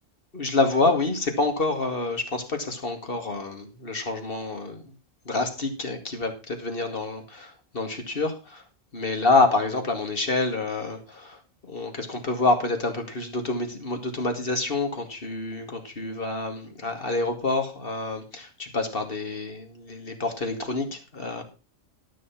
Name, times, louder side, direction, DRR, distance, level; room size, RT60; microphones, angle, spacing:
voice 1, 0.3-4.8 5.3-8.6 8.9-11.4 11.6-21.4, left 3 dB, 45° left, 5 dB, 2.4 m, -27 dB
12.5 x 6.4 x 6.0 m, 0.32 s
omnidirectional pair, 1.3 m